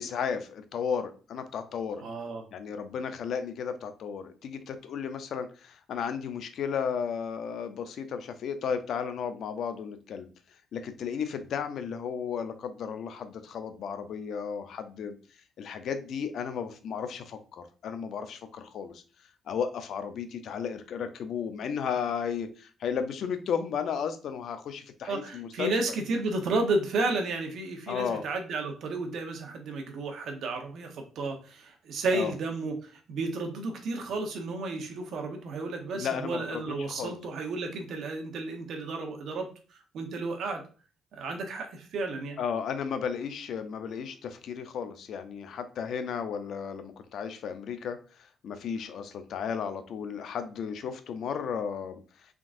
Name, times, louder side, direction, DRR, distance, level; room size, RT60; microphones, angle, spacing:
voice 1, 0.0-2.0 2.5-10.3 10.7-15.2 15.6-19.0 19.5-25.8 27.9-28.2 32.1-32.3 35.9-37.2 42.4-48.0 48.4-52.0, left 7 dB, 70° left, 9 dB, 0.5 m, -34 dB
voice 2, 2.0-2.5 25.0-40.6 41.1-42.4, right 3 dB, 70° right, 4 dB, 0.9 m, -32 dB
3.7 x 3.6 x 2.5 m, 0.37 s
cardioid pair, 90°, 0 cm